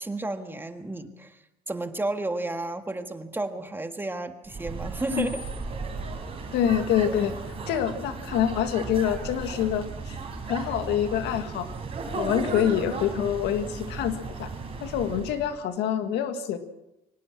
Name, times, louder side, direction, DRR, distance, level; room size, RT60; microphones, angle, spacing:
voice 1, 0.0-1.4 1.7-5.4, right 2 dB, 10° right, 7 dB, 1.7 m, -32 dB
sound 1, 4.4-15.6, right 4 dB, 35° right, 4.5 m, -35 dB
voice 2, 6.5-7.3 7.7-10.2 10.5-11.7 12.1-14.5 14.8-16.6, left 9 dB, 85° left, 8 dB, 1.9 m, -26 dB
24.0 x 18.5 x 6.1 m, 0.90 s
cardioid pair, 110°, 17 cm